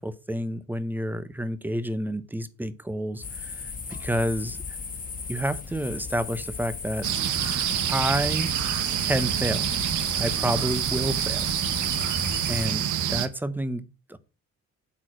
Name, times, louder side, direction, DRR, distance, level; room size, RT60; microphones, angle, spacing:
voice 1, 0.0-4.6 5.3-7.1 7.9-8.6 9.0-9.7 10.2-11.4 12.5-14.2, equal, 5° right, 13 dB, 0.8 m, -29 dB
sound 1, 3.2-12.7, left 5 dB, 25° left, 1.3 m, -36 dB
sound 2, 7.0-13.3, right 11 dB, 80° right, 1.1 m, -27 dB
8.3 x 4.9 x 6.0 m, 0.30 s
cardioid pair, 125°, 30 cm